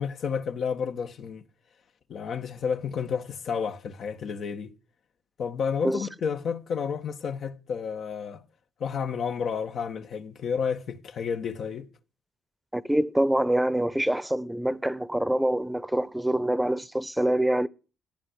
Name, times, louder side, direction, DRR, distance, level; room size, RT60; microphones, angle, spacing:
voice 1, 0.0-1.4 2.1-4.7 5.4-8.4 8.8-11.9, left 6 dB, 60° left, 1.6 m, -31 dB
voice 2, 12.7-17.7, right 1 dB, 5° right, 1.0 m, -25 dB
14.5 x 10.5 x 8.2 m
supercardioid pair, 60°, 0 cm